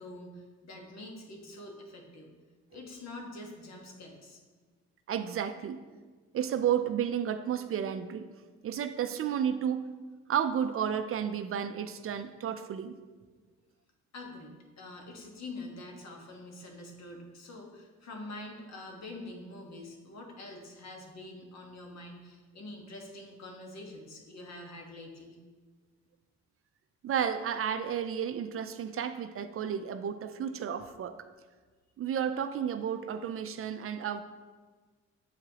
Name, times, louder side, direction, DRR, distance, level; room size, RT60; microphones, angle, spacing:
voice 1, 0.0-2.3 2.7-4.4 14.1-25.4, left 2 dB, 60° left, 1 dB, 1.3 m, -45 dB
voice 2, 5.1-5.8 6.3-8.3 8.6-9.8 10.3-13.0 27.0-31.2 32.0-34.2, right 8 dB, 50° right, 10 dB, 0.4 m, -32 dB
7.7 x 4.8 x 2.9 m, 1.4 s
cardioid pair, 90°, 30 cm